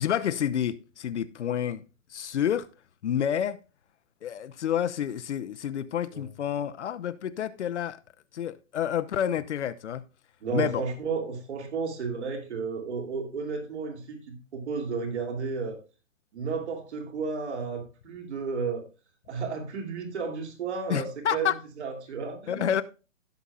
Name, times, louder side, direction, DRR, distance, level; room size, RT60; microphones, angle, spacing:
voice 1, 0.0-1.8 2.1-2.7 3.0-3.6 4.2-8.0 8.3-10.0 10.5-10.8 20.9-21.6 22.5-22.8, left 9 dB, 60° left, 0.7 m, -29 dB
voice 2, 10.4-15.8 16.3-18.9 19.3-22.7, right 5 dB, 55° right, 2.9 m, -33 dB
15.5 x 7.0 x 2.3 m
hypercardioid pair, 160°, 39 cm